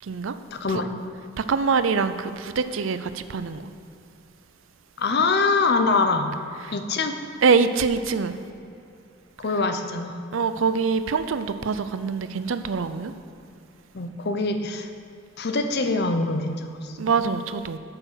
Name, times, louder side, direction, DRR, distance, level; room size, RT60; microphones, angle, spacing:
voice 1, 0.0-0.4 1.4-3.7 7.4-8.4 10.3-13.1 17.0-17.8, right 5 dB, 75° right, 0.5 m, -24 dB
voice 2, 0.5-0.9 5.0-6.3 6.7-7.2 9.4-10.2 13.9-14.9 15.4-17.0, left 3 dB, 55° left, 0.7 m, -24 dB
8.6 x 6.8 x 6.2 m
head